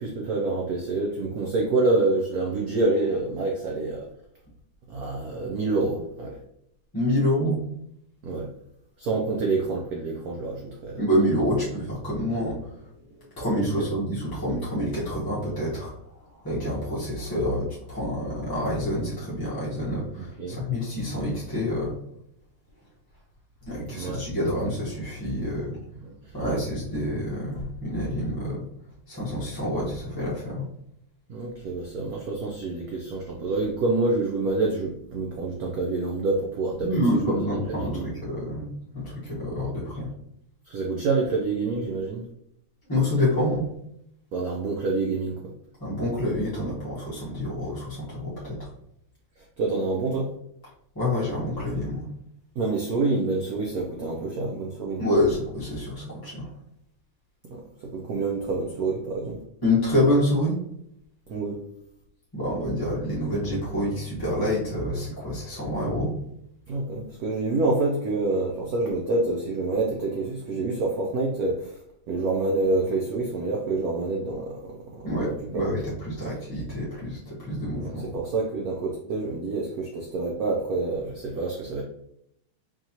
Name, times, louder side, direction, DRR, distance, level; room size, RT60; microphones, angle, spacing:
voice 1, 0.0-4.1 4.9-6.4 8.2-8.5 9.0-11.0 13.8-13.9 20.2-20.6 23.9-24.2 26.4-26.6 31.3-37.4 37.7-38.1 40.7-42.3 44.3-45.4 49.4-50.3 52.6-55.0 57.5-59.4 61.3-61.6 66.7-71.8 72.1-75.6 77.8-81.8, right 3 dB, 90° right, -1 dB, 0.8 m, -27 dB
voice 2, 6.9-7.6 11.0-15.9 16.4-22.0 23.7-25.7 26.3-28.6 29.1-30.7 36.8-40.1 42.9-43.7 45.8-48.7 50.9-52.1 55.0-56.5 59.6-60.6 62.3-66.2 75.0-78.1, left 1 dB, 20° left, -8 dB, 0.6 m, -27 dB
4.6 x 3.0 x 2.7 m, 0.74 s
omnidirectional pair, 2.3 m